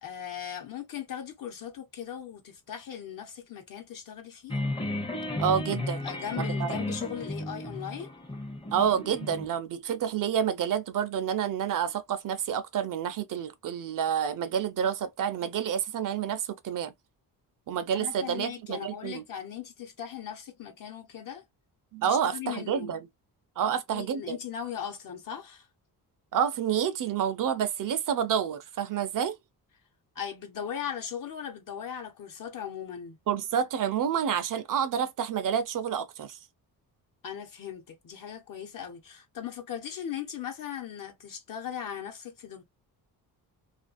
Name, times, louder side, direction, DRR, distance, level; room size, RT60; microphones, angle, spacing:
voice 1, 0.0-4.6 5.8-8.1 17.9-21.4 22.1-23.0 23.7-25.7 30.1-33.2 37.2-42.6, left 9 dB, 55° left, 1.0 m, -38 dB
sound 1, 4.5-9.5, left 1 dB, 15° left, 0.6 m, -33 dB
voice 2, 5.4-6.1 6.3-6.8 8.7-16.9 17.7-19.2 21.9-23.0 23.6-24.4 26.3-29.4 33.3-36.4, right 8 dB, 55° right, 0.5 m, -29 dB
2.5 x 2.3 x 2.5 m
cardioid pair, 125°, 39 cm